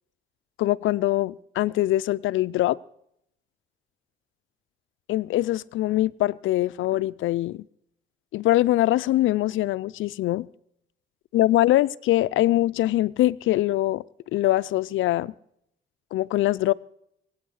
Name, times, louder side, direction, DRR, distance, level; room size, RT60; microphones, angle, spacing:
voice 1, 0.6-2.8 5.1-7.6 8.3-10.5 11.3-14.0 14.3-15.3 16.1-16.7, left 15 dB, 80° left, 0.5 m, -23 dB
21.5 x 8.7 x 6.4 m
cardioid pair, 90°, 20 cm